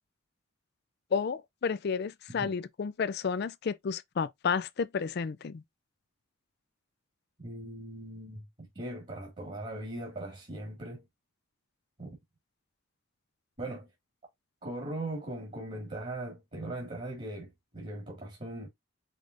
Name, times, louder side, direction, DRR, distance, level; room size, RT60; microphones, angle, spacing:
voice 1, 1.1-5.6, left 6 dB, 50° left, 0.4 m, -31 dB
voice 2, 7.4-11.0 12.0-12.2 13.6-13.9 14.6-18.7, right 1 dB, 35° right, 1.8 m, -39 dB
5.1 x 3.4 x 2.5 m
head